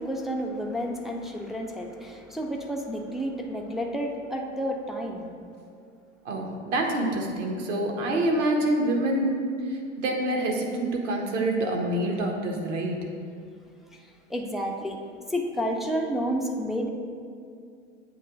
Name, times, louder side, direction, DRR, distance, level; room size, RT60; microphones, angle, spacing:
voice 1, 0.0-5.3 14.3-15.0 15.3-16.9, equal, ahead, 0 dB, 0.4 m, -30 dB
voice 2, 6.2-13.0, right 1 dB, 70° right, 1 dB, 1.2 m, -26 dB
7.8 x 2.9 x 5.8 m, 2.3 s
hypercardioid pair, 90°, 38 cm